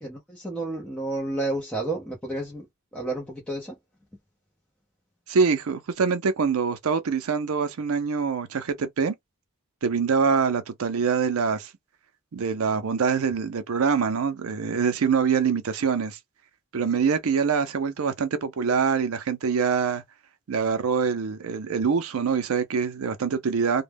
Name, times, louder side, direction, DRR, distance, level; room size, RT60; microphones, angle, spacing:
voice 1, 0.0-2.7 2.9-3.7, right 2 dB, 5° left, 0.6 m, -31 dB
voice 2, 5.3-9.1 9.8-11.7 12.3-16.2 16.7-20.0 20.5-23.8, right 5 dB, 80° right, 0.5 m, -24 dB
2.2 x 2.0 x 3.3 m
head